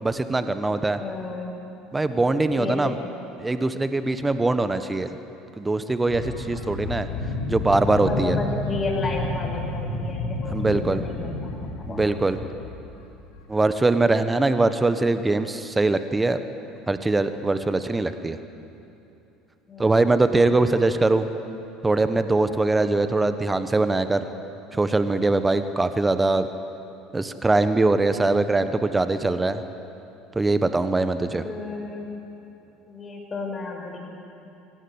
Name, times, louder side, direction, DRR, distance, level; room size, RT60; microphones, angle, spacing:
voice 1, 0.0-1.0 1.9-3.0 3.4-5.1 5.6-7.1 7.5-8.4 10.5-11.0 11.9-12.4 13.5-16.4 16.9-18.4 19.8-21.3 21.8-24.3 24.7-26.5 27.1-29.6 30.3-31.4, right 2 dB, 15° right, 10 dB, 1.4 m, -22 dB
voice 2, 1.0-1.6 2.5-3.1 8.0-12.2 12.8-12.9 19.7-20.2 31.3-32.1 32.9-34.0, left 3 dB, 30° left, 1 dB, 5.9 m, -33 dB
sound 1, 6.1-12.9 13.3-13.4, left 2 dB, 70° left, 2.7 m, -31 dB
24.0 x 19.0 x 8.3 m, 2.9 s
figure-of-eight pair, 65°, 0 cm